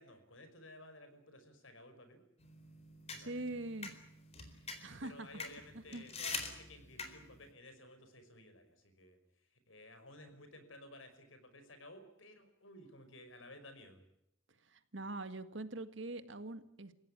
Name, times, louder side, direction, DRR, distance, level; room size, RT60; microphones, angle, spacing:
voice 1, 0.0-2.2 3.1-3.4 4.5-14.0, left 1 dB, 75° left, 9 dB, 5.4 m, -56 dB
sound 1, 2.4-7.5, left 4 dB, 30° left, 4.2 m, -45 dB
voice 2, 3.2-3.9 4.8-5.3 5.7-6.0 14.6-16.9, right 2 dB, 65° right, 10 dB, 1.9 m, -43 dB
29.0 x 16.5 x 9.8 m, 0.77 s
head